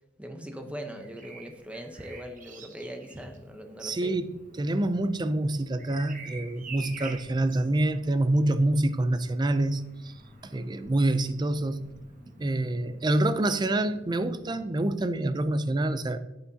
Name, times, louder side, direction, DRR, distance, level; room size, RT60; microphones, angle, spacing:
voice 1, 0.2-4.1, equal, 5° right, 0.9 m, -40 dB
Bird vocalization bird call bird song, 0.9-12.7 14.4-14.6, right 4 dB, 45° right, 1.0 m, -49 dB
sound 1, 3.7-14.9, equal, 15° left, 1.5 m, -54 dB
voice 2, 3.8-10.1 10.4-11.9 12.4-16.2, right 1 dB, 20° right, 0.4 m, -27 dB
9.2 x 8.4 x 2.8 m
head